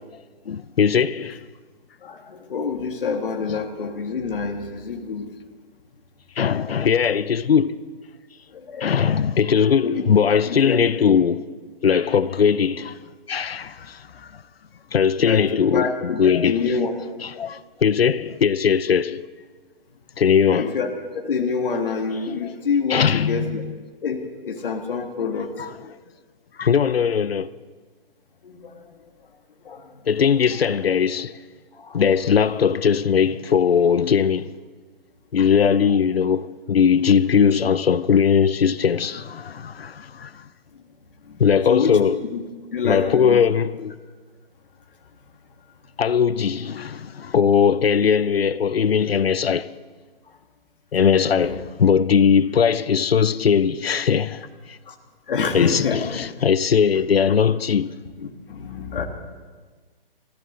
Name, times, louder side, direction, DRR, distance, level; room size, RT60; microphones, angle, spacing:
voice 1, 0.5-1.4 6.4-7.8 8.8-11.4 11.8-13.0 13.3-14.4 14.9-16.8 17.2-19.2 20.2-20.7 22.4-22.5 22.9-23.8 25.6-25.7 26.6-27.5 30.1-31.4 31.9-34.5 35.3-40.4 41.4-42.2 42.8-43.9 46.0-49.7 50.9-54.8 55.5-57.9, left 7 dB, 80° left, 0.7 m, -20 dB
voice 2, 2.0-5.3 8.5-9.0 9.8-10.0 10.5-10.8 11.1-11.2 13.5-13.6 15.2-15.4 15.7-16.9 20.5-23.6 24.0-25.5 28.4-28.9 29.6-29.9 31.7-32.0 35.4-35.5 41.2-41.4 41.7-42.0 42.3-42.4 42.7-43.4 51.4-51.6 54.9-55.0 55.3-56.0 58.2-59.0, left 5 dB, 60° left, 1.8 m, -27 dB
24.0 x 15.0 x 3.8 m
hypercardioid pair, 145°, 30 cm